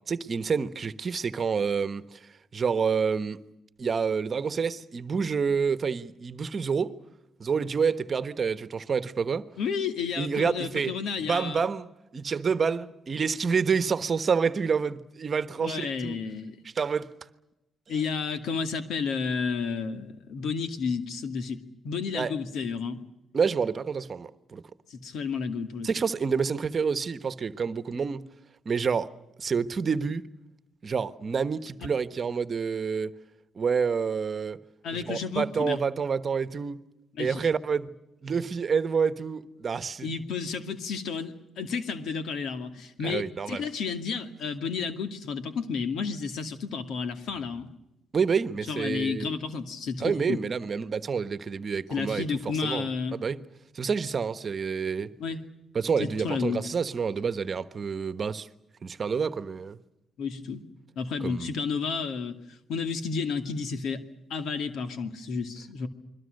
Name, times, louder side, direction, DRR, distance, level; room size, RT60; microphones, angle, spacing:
voice 1, 0.1-2.2 2.5-3.4 3.8-7.0 7.4-9.4 10.2-10.9 11.3-11.9 12.1-16.2 16.7-17.1 22.1-22.3 23.3-24.6 25.8-28.3 28.6-29.1 29.4-30.2 30.8-33.1 33.5-34.6 34.9-36.8 37.2-37.9 38.2-40.1 43.0-43.6 48.1-49.3 50.0-52.2 52.6-53.4 53.7-55.1 55.7-58.5 58.8-59.8 61.2-61.5, right 6 dB, 40° right, 1.2 m, -28 dB
voice 2, 9.6-11.6 15.6-16.6 17.9-23.0 24.9-25.9 31.8-31.9 34.8-35.8 37.2-37.4 40.0-47.7 48.7-50.4 51.9-53.2 55.2-55.4 56.0-56.6 60.2-60.6 61.0-64.0 64.3-65.9, left 5 dB, 75° left, 2.4 m, -31 dB
29.0 x 22.0 x 6.6 m
cardioid pair, 90°, 0 cm